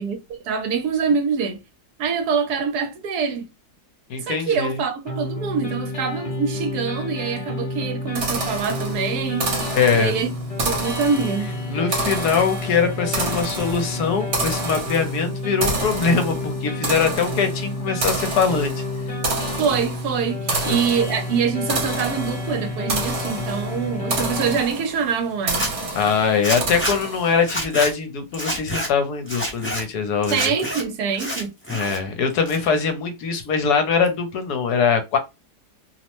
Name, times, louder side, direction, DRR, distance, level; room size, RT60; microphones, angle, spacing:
voice 1, 0.0-1.6 2.0-3.5 4.3-9.5 9.9-10.3 10.6-11.5 19.5-25.7 30.3-31.5, right 6 dB, 75° right, 1.1 m, -25 dB
voice 2, 4.1-4.8 9.7-10.2 11.7-18.7 20.5-20.8 25.9-30.4 31.7-35.2, left 5 dB, 75° left, 1.2 m, -22 dB
sound 1, 5.1-24.6, left 2 dB, 30° left, 0.9 m, -30 dB
sound 2, 8.2-27.5, right 3 dB, 50° right, 1.1 m, -29 dB
Zipper (clothing), 25.4-25.7 26.4-27.0 27.4-27.9 28.3-28.9 29.3-29.8 30.2-30.8 31.1-32.0 32.3-32.9, equal, 10° left, 0.6 m, -27 dB
2.8 x 2.0 x 2.9 m
omnidirectional pair, 1.8 m